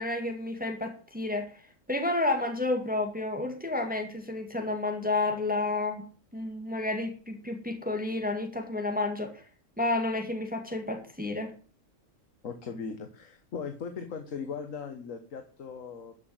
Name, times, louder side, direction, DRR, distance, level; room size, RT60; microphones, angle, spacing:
voice 1, 0.0-1.4 1.9-6.0 6.3-9.4 9.8-11.5, left 2 dB, 5° right, 3 dB, 2.0 m, -30 dB
voice 2, 12.4-16.1, left 5 dB, 75° left, 6 dB, 1.7 m, -38 dB
13.0 x 5.9 x 8.0 m, 0.40 s
omnidirectional pair, 1.4 m